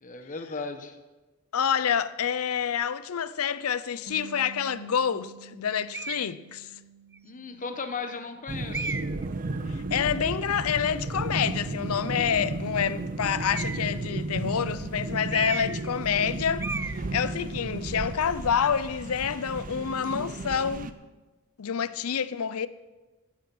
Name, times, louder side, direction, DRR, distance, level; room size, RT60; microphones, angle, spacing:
voice 1, 0.0-1.0 7.2-9.0, left 4 dB, 35° left, 1.2 m, -36 dB
voice 2, 1.5-6.7 9.7-16.7 17.1-20.9 21.6-22.7, left 7 dB, 80° left, 0.5 m, -28 dB
Bass guitar, 4.1-10.3, right 6 dB, 75° right, 2.0 m, -50 dB
sound 1, 5.9-6.3 7.1-7.2 8.7-9.3 13.4-14.0 15.3-15.9 16.1-16.3 16.6-17.0, right 3 dB, 10° right, 0.3 m, -34 dB
sound 2, 8.5-20.9, right 2 dB, 40° right, 0.7 m, -33 dB
16.0 x 8.7 x 6.1 m
head